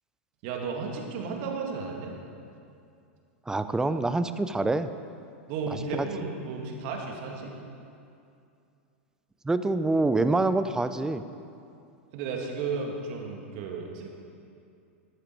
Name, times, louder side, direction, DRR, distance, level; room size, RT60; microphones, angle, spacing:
voice 1, 0.4-2.1 5.5-7.5 12.1-14.1, right 4 dB, 55° right, 1 dB, 2.3 m, -33 dB
voice 2, 3.5-4.9 5.9-6.1 9.4-11.2, right 2 dB, 10° right, 11 dB, 0.6 m, -26 dB
12.5 x 12.5 x 4.7 m, 2.5 s
hypercardioid pair, 100°, 7 cm